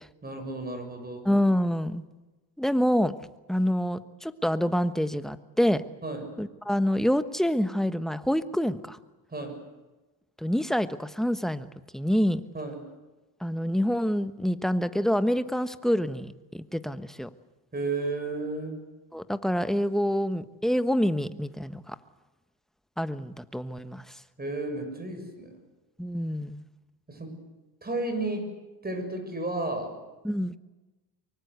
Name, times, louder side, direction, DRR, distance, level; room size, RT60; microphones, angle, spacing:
voice 1, 0.2-1.3 6.0-6.3 9.3-9.6 12.5-12.8 17.7-18.8 24.4-25.5 27.1-27.4 27.8-28.5 28.8-30.0, right 2 dB, 20° right, 7 dB, 6.9 m, -33 dB
voice 2, 1.2-2.0 2.6-3.1 3.5-5.8 6.4-9.0 10.4-11.7 11.9-12.4 13.4-17.3 19.1-21.9 23.0-24.2 26.0-26.6 30.2-30.6, equal, ahead, 11 dB, 1.2 m, -27 dB
24.5 x 24.0 x 8.2 m, 1.1 s
cardioid pair, 115°, 44 cm